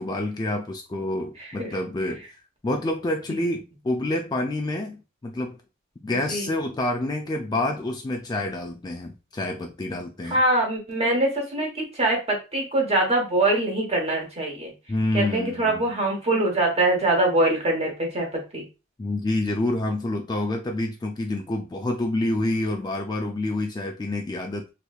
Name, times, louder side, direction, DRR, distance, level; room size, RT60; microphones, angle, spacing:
voice 1, 0.0-2.4 2.6-5.6 6.0-10.4 14.9-15.9 19.0-24.7, left 1 dB, 20° left, 0.3 m, -28 dB
voice 2, 10.3-14.7 15.1-18.3 18.5-18.6, right 2 dB, 30° right, 1.1 m, -23 dB
3.3 x 3.1 x 2.3 m
head